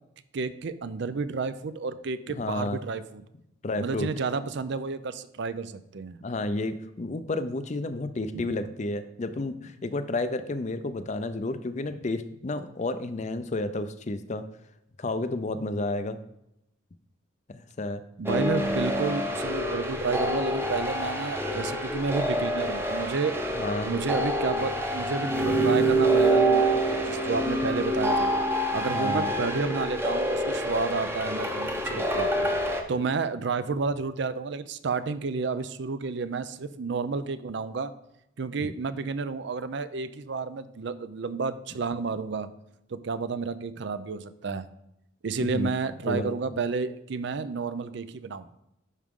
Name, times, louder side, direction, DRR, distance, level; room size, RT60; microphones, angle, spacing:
voice 1, 0.3-3.2 3.8-6.2 8.3-8.4 18.2-23.4 23.8-28.3 28.7-32.3 32.9-37.9 38.4-42.5 42.9-44.7 45.2-48.5, right 4 dB, 60° right, 13 dB, 0.5 m, -31 dB
voice 2, 2.3-2.8 3.6-4.1 6.2-14.5 15.0-16.2 17.5-18.0 23.5-23.9 28.9-29.3 45.4-45.7 46.1-46.6, left 2 dB, 35° left, 11 dB, 0.5 m, -31 dB
sound 1, 18.3-32.8, right 1 dB, 10° right, 0.7 m, -26 dB
11.0 x 4.8 x 3.7 m, 0.83 s
head